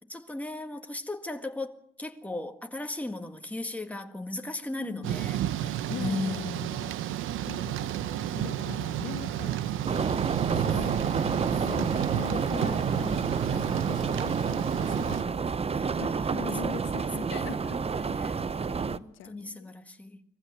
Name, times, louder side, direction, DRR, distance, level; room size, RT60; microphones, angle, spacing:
voice 1, 0.1-6.9 8.7-9.0 10.7-11.0 11.5-11.9 13.5-13.8 15.7-16.7 17.2-17.4 17.7-20.2, left 2 dB, 5° left, 1.9 m, -38 dB
voice 2, 4.8-5.2 5.9-6.9 7.4-10.0 10.5-11.1 11.6-15.5 16.0-17.8 18.1-18.6 18.9-19.7, left 10 dB, 80° left, 1.3 m, -42 dB
Thunder / Rain, 5.0-15.2, right 11 dB, 85° right, 0.9 m, -31 dB
sound 1, 9.8-19.0, right 5 dB, 30° right, 0.8 m, -29 dB
22.5 x 15.0 x 9.4 m
cardioid pair, 90°, 20 cm